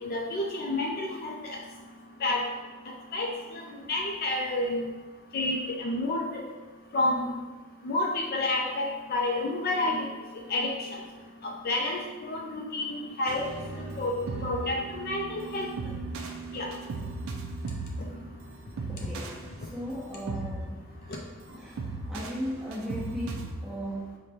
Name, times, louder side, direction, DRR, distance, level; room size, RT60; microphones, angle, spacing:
voice 1, 0.0-1.6 2.2-2.4 3.1-3.3 3.9-4.9 5.3-6.2 6.9-7.4 7.8-10.1 10.5-10.9 11.4-13.5 13.7-14.1 14.4-15.7 16.5-16.7, left 2 dB, 40° left, 0 dB, 0.4 m, -29 dB
sound 1, 13.3-23.5, right 3 dB, 65° right, 0.5 m, -37 dB
voice 2, 18.9-20.8 21.5-24.2, equal, ahead, -6 dB, 0.8 m, -37 dB
4.9 x 2.2 x 4.2 m, 1.4 s
head